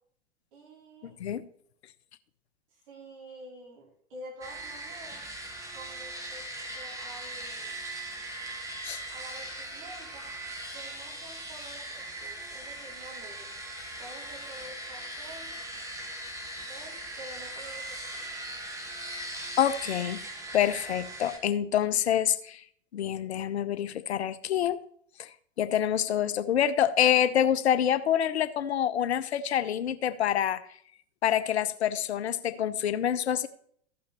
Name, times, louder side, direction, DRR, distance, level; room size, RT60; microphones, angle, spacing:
voice 1, 0.5-1.2 2.7-5.2 5.7-6.4 6.7-7.8 9.1-10.2 10.7-13.5 14.0-15.6 16.6-18.5, right 1 dB, 55° right, -3 dB, 4.5 m, -48 dB
voice 2, 1.0-1.5 8.8-9.0 19.6-20.2 20.5-22.6 22.9-24.8 25.2-25.3 25.6-30.6 31.2-33.5, left 10 dB, 70° left, 12 dB, 0.8 m, -26 dB
sound 1, 4.4-21.4, right 1 dB, 10° right, 1.7 m, -40 dB
14.5 x 5.8 x 4.2 m, 0.63 s
figure-of-eight pair, 100°, 34 cm